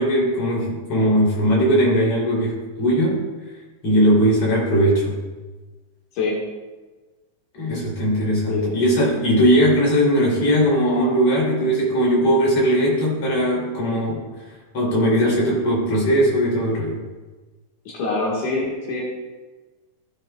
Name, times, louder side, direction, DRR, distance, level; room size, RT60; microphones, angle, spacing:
voice 1, 0.0-3.2 3.8-5.2 7.5-14.3 14.7-17.0, equal, 45° left, -6 dB, 4.4 m, -19 dB
voice 2, 6.1-6.4 8.5-8.8 17.9-19.0, left 3 dB, 85° left, -4 dB, 3.3 m, -24 dB
16.0 x 9.0 x 2.4 m, 1.3 s
omnidirectional pair, 3.5 m